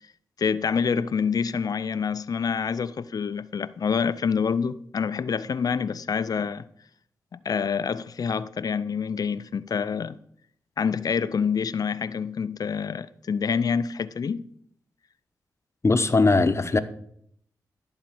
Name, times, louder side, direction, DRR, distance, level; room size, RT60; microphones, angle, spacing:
voice 1, 0.4-6.6 7.3-10.2 10.8-14.4, left 6 dB, 55° left, 0.5 m, -27 dB
voice 2, 15.8-16.8, left 3 dB, 40° left, 0.9 m, -20 dB
11.5 x 4.1 x 7.5 m
supercardioid pair, 40°, 8 cm